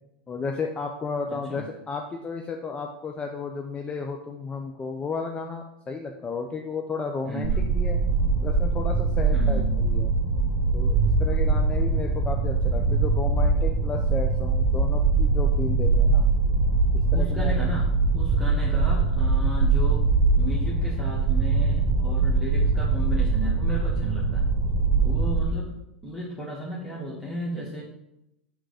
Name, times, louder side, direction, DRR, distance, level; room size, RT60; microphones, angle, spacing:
voice 1, 0.3-8.0 8.4-10.1 10.7-16.3 17.1-17.6, left 4 dB, 20° left, 2 dB, 0.7 m, -33 dB
voice 2, 1.3-1.7 7.2-7.6 9.3-9.7 17.1-17.9 18.1-20.1 20.4-24.4 25.0-25.7 26.0-27.8, equal, 5° right, -6 dB, 1.8 m, -34 dB
sound 1, 7.4-25.4, right 4 dB, 35° right, 1.5 m, -22 dB
7.7 x 3.7 x 5.0 m, 0.82 s
hypercardioid pair, 105°, 5 cm